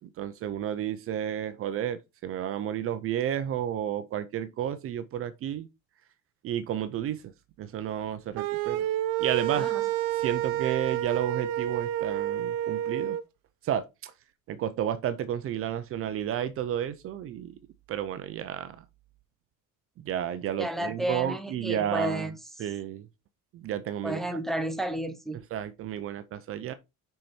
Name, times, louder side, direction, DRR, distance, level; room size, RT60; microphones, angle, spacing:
voice 1, 0.2-5.7 6.4-7.2 7.6-8.9 9.2-9.7 10.2-13.2 13.6-14.1 14.5-17.6 17.9-18.8 20.0-22.3 22.6-23.1 23.5-24.2 25.5-26.7, right 10 dB, 40° right, 0.6 m, -31 dB
sound 1, 8.4-13.2, right 12 dB, 70° right, 0.8 m, -29 dB
voice 2, 9.5-9.9 20.6-22.7 24.0-25.4, right 1 dB, ahead, 0.7 m, -32 dB
6.1 x 5.7 x 4.4 m
cardioid pair, 170°, 35 cm